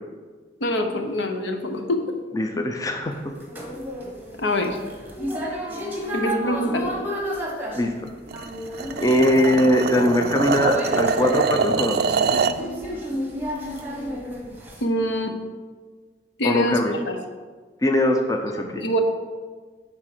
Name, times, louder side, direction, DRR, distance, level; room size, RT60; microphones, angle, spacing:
voice 1, 0.6-2.0 4.4-4.8 6.1-6.9 14.8-15.3 16.4-17.2 18.6-19.0, equal, 75° left, 4 dB, 0.9 m, -24 dB
voice 2, 2.3-3.1 7.7-7.9 9.0-12.2 16.4-17.0 17.8-18.8, left 1 dB, 20° left, 4 dB, 0.5 m, -21 dB
sound 1, 3.1-14.8, equal, 10° right, 1.1 m, -32 dB
sound 2, 8.3-12.6, right 5 dB, 55° right, 0.3 m, -24 dB
9.8 x 3.7 x 6.0 m, 1.4 s
head